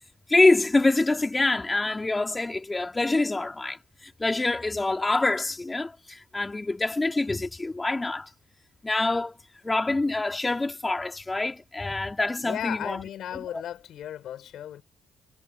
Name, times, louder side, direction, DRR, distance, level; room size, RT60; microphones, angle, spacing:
voice 1, 0.3-8.3 8.8-9.4 9.6-13.0, left 2 dB, 20° left, 3.5 m, -25 dB
voice 2, 12.4-14.8, left 11 dB, 75° left, 6.5 m, -35 dB
cardioid pair, 90°, 0 cm